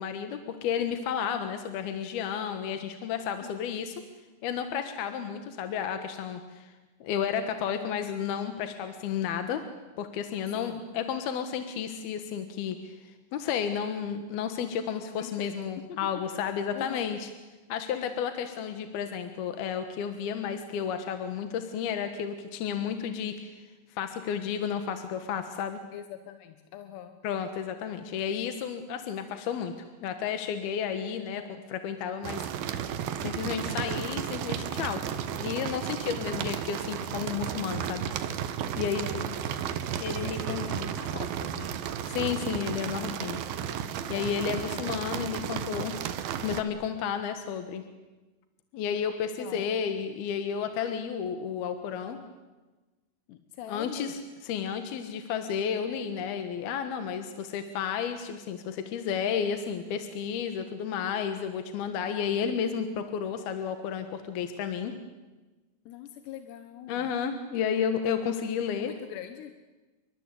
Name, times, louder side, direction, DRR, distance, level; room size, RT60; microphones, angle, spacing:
voice 1, 0.0-3.9 4.4-6.7 7.0-9.6 10.0-17.3 17.7-23.6 23.9-25.8 27.2-29.7 30.0-32.8 33.2-35.0 35.3-38.1 38.8-39.2 40.0-40.9 42.1-43.4 44.1-45.9 46.4-47.8 48.7-52.2 53.7-64.9 66.9-68.9, left 7 dB, 70° left, 8 dB, 3.2 m, -32 dB
voice 2, 10.5-10.8 15.2-15.6 15.9-16.0 16.7-17.1 17.9-18.2 25.9-27.2 39.1-39.6 40.0-41.7 44.1-44.9 45.5-46.0 49.4-49.7 53.3-54.1 65.9-67.1 68.9-69.5, left 10 dB, 90° left, 8 dB, 3.5 m, -43 dB
sound 1, 32.2-46.6, right 9 dB, 70° right, 3.0 m, -33 dB
29.5 x 24.0 x 8.4 m, 1.2 s
omnidirectional pair, 4.7 m